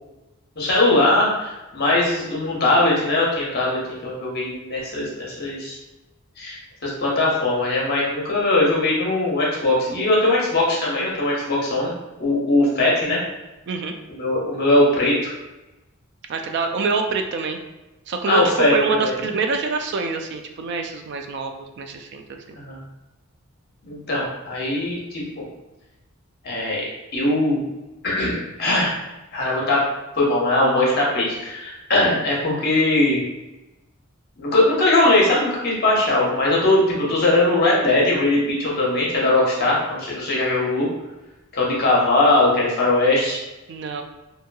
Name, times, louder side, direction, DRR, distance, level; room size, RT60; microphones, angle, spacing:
voice 1, 0.6-5.8 6.4-6.6 6.8-11.9 12.2-13.2 14.2-15.3 18.3-18.7 19.0-19.1 22.5-22.8 23.8-25.4 26.4-26.8 27.1-27.6 28.0-28.9 29.3-29.9 30.1-33.2 34.4-40.9 41.5-43.4, left 2 dB, 50° left, -4 dB, 0.9 m, -20 dB
voice 2, 16.3-17.6 18.1-22.6 43.7-44.0, right 4 dB, 55° right, 5 dB, 0.3 m, -26 dB
2.9 x 2.7 x 2.2 m, 1.0 s
head